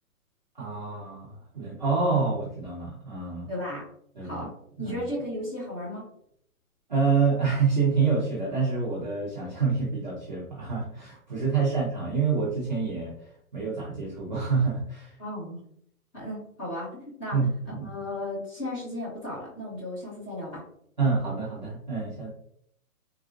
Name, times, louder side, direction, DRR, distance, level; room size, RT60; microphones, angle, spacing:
voice 1, 0.5-3.5 4.2-4.4 4.8-5.0 6.9-13.1 13.5-15.2 17.3-17.9 21.0-22.3, right 5 dB, 35° right, -7 dB, 0.5 m, -27 dB
voice 2, 3.5-3.9 4.2-4.5 4.8-6.0 11.5-11.7 15.2-15.6 16.1-17.4 17.8-20.6, left 1 dB, 10° left, -10 dB, 1.2 m, -35 dB
3.5 x 2.3 x 2.4 m, 0.68 s
hypercardioid pair, 160°, 44 cm